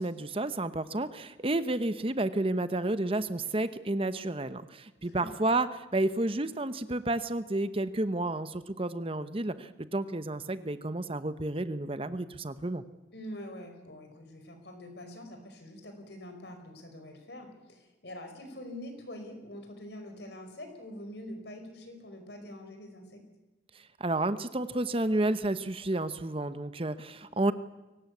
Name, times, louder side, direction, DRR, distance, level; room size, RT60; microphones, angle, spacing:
voice 1, 0.0-12.8 24.0-27.5, right 2 dB, 30° right, 12 dB, 0.9 m, -31 dB
voice 2, 5.0-5.5 13.1-23.3, left 1 dB, 70° left, 5 dB, 5.2 m, -45 dB
23.0 x 18.5 x 8.4 m, 1.1 s
head